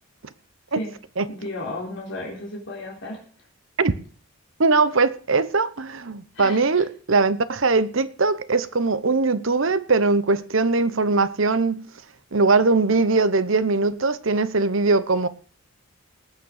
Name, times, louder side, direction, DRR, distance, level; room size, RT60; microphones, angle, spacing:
voice 1, 1.3-3.2 6.3-6.6, left 2 dB, 55° left, 3.9 m, -33 dB
voice 2, 4.6-11.8 12.3-15.3, right 3 dB, 60° right, 0.9 m, -21 dB
19.0 x 6.7 x 6.6 m
head